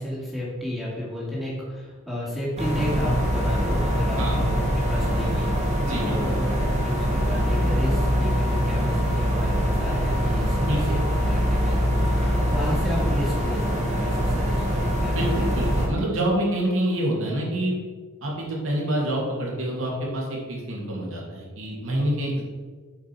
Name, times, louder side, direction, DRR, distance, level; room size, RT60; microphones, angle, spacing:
voice 1, 0.0-15.2, left 1 dB, ahead, -7 dB, 2.0 m, -32 dB
sound 1, 2.6-15.9, equal, 30° right, 1.6 m, -23 dB
voice 2, 5.8-6.2 10.6-11.0 15.1-17.7 18.2-22.4, right 1 dB, 65° right, -3 dB, 2.7 m, -27 dB
8.1 x 5.2 x 6.1 m, 1.5 s
head